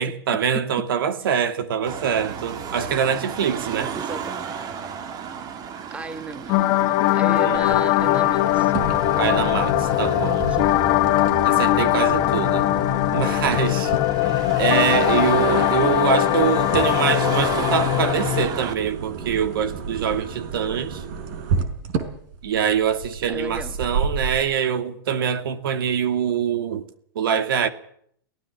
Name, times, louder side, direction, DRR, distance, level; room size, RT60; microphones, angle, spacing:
voice 1, 0.0-4.0 7.4-7.6 9.2-10.5 11.4-12.7 13.1-13.9 14.3-21.0 22.4-26.9 27.2-27.7, right 7 dB, 70° right, 2.5 m, -24 dB
Car passing by / Traffic noise roadway noise / Engine, 1.9-18.7, right 7 dB, 30° right, 2.3 m, -34 dB
voice 2, 3.9-4.5 5.9-6.7 7.1-8.7 10.5-10.7 15.5-15.8 23.3-23.8, right 2 dB, 10° right, 2.0 m, -35 dB
sound 1, 6.5-18.5, left 15 dB, 45° left, 1.9 m, -20 dB
sound 2, 7.5-24.4, right 5 dB, 55° right, 4.9 m, -32 dB
23.0 x 18.0 x 7.3 m
hypercardioid pair, 125°, 12 cm